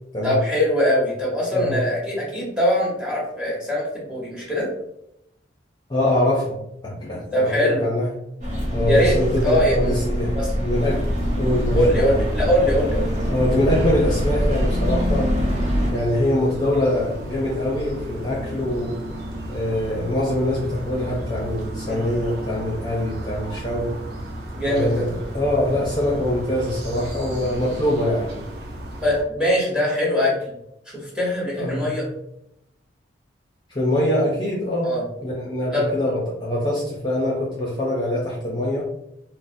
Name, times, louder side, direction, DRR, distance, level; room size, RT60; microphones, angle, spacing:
voice 1, 0.2-4.7 7.3-7.9 8.9-9.2 9.4-9.9 10.3-10.5 11.7-13.1 21.9-22.0 24.5-25.0 29.0-30.5 30.9-32.1 34.8-35.0 35.7-35.9, equal, 5° right, -4 dB, 1.0 m, -22 dB
voice 2, 5.9-6.6 6.8-8.1 8.7-11.0 11.4-12.2 13.2-15.4 15.9-18.9 19.5-23.9 24.7-28.4 31.6-31.9 33.7-34.9 35.2-38.9, left 1 dB, 25° left, -5 dB, 0.6 m, -23 dB
sound 1, 8.4-15.9, equal, 40° right, 1.0 m, -24 dB
sound 2, 10.7-29.2, right 1 dB, 60° right, 0.7 m, -33 dB
3.9 x 2.0 x 2.6 m, 0.81 s
head